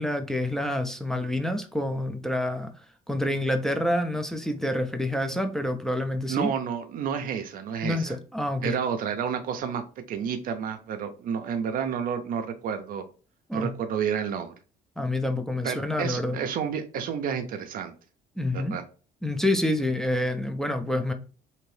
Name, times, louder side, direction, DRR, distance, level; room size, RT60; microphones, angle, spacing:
voice 1, 0.0-2.7 3.1-6.5 7.8-8.8 13.5-13.7 15.0-16.4 18.4-18.7 19.2-21.1, left 1 dB, 5° left, 0.4 m, -27 dB
voice 2, 6.3-8.2 8.6-9.8 10.1-13.0 13.5-14.5 15.6-17.9 18.5-18.8, right 7 dB, 55° right, 0.4 m, -30 dB
2.7 x 2.5 x 3.1 m
cardioid pair, 110°, 17 cm